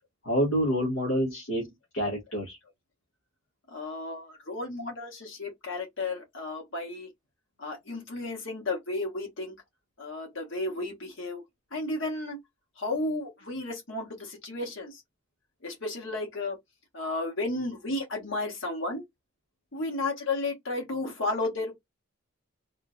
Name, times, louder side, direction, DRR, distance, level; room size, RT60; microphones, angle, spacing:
voice 1, 0.2-2.6, equal, 90° left, 1.5 m, -28 dB
voice 2, 3.7-7.1 7.6-9.5 10.0-11.4 11.7-12.4 12.8-15.0 15.6-16.6 16.9-19.0 19.7-21.7, left 2 dB, 65° left, 1.1 m, -33 dB
3.6 x 2.6 x 2.2 m
head